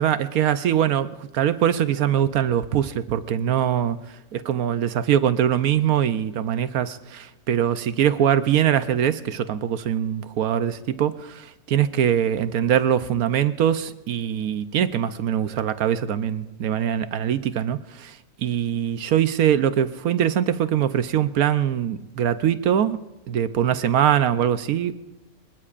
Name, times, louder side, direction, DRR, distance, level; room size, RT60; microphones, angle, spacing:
voice 1, 0.0-4.0 4.3-23.0 23.3-24.9, right 9 dB, 80° right, 12 dB, 1.2 m, -22 dB
24.5 x 21.5 x 2.5 m, 1.0 s
omnidirectional pair, 1.5 m